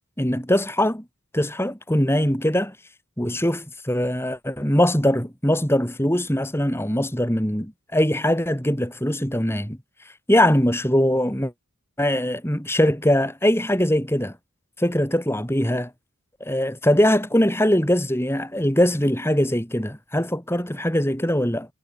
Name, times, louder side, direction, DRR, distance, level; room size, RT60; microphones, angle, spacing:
voice 1, 0.2-1.0 1.3-2.7 3.2-9.8 10.3-11.5 12.0-14.3 14.8-15.9 16.4-21.7, left 1 dB, 10° left, 6.9 m, -21 dB
head